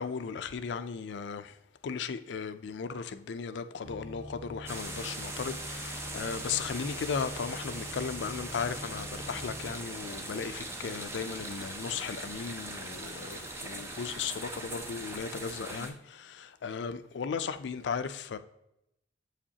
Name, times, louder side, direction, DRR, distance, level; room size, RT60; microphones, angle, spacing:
voice 1, 0.0-1.6 1.8-18.4, left 6 dB, 65° left, 0.4 m, -36 dB
sound 1, 3.8-9.7, equal, 60° right, 0.7 m, -45 dB
sound 2, 4.7-15.9, right 1 dB, 15° right, 0.6 m, -40 dB
7.1 x 5.0 x 2.8 m
head